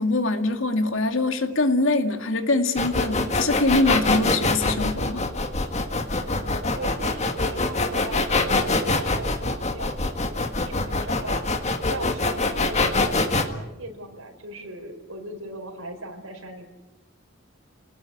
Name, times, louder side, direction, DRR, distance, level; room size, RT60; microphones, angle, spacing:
voice 1, 0.0-5.3, left 2 dB, 65° left, 7 dB, 2.2 m, -23 dB
sound 1, 2.8-13.4, left 3 dB, 30° left, 1.7 m, -24 dB
voice 2, 6.8-11.4 11.9-16.7, right 1 dB, 80° right, 3 dB, 4.8 m, -38 dB
29.0 x 18.5 x 8.7 m, 1.1 s
head